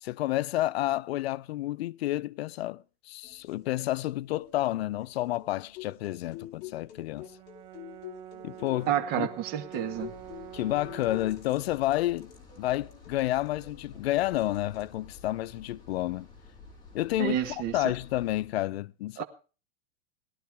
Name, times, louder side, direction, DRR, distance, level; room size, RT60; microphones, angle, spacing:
voice 1, 0.0-7.3 8.4-8.9 9.2-9.3 10.5-12.3 12.6-16.3 16.9-17.4 17.7-19.2, left 15 dB, 80° left, 0.6 m, -30 dB
sound 1, 3.2-15.0, left 12 dB, 35° left, 3.2 m, -48 dB
Brass instrument, 7.2-11.5, right 13 dB, 50° right, 1.5 m, -46 dB
voice 2, 8.9-10.1 17.2-17.9 19.2-19.3, right 11 dB, 30° right, 1.1 m, -30 dB
sound 2, 9.9-18.5, left 4 dB, 15° left, 3.8 m, -51 dB
18.0 x 12.5 x 3.5 m
supercardioid pair, 160°, 30 cm